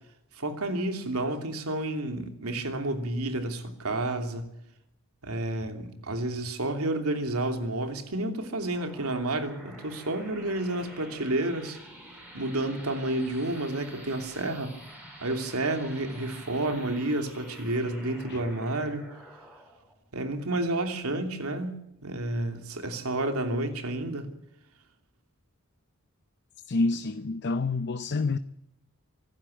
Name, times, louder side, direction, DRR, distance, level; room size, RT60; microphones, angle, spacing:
voice 1, 0.4-4.5 5.2-11.8 12.3-14.7 15.2-19.0 20.1-24.3, right 2 dB, 85° right, 3.0 m, -30 dB
sound 1, 8.4-21.5, right 1 dB, 5° right, 5.2 m, -48 dB
voice 2, 26.7-28.4, left 3 dB, 50° left, 0.7 m, -28 dB
25.0 x 12.5 x 8.6 m
head